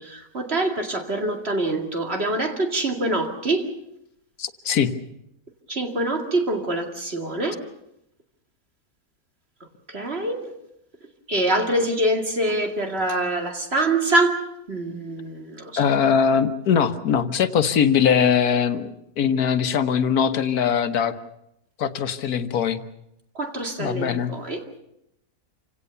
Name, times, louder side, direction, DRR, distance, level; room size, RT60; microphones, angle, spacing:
voice 1, 0.0-3.7 5.7-7.6 9.9-10.5 11.3-15.9 23.3-24.8, right 1 dB, 40° right, 4 dB, 2.4 m, -25 dB
voice 2, 4.4-4.9 15.8-21.1 21.8-22.8 23.8-24.3, left 7 dB, 80° left, 11 dB, 1.6 m, -21 dB
27.0 x 17.5 x 6.9 m, 0.80 s
omnidirectional pair, 1.6 m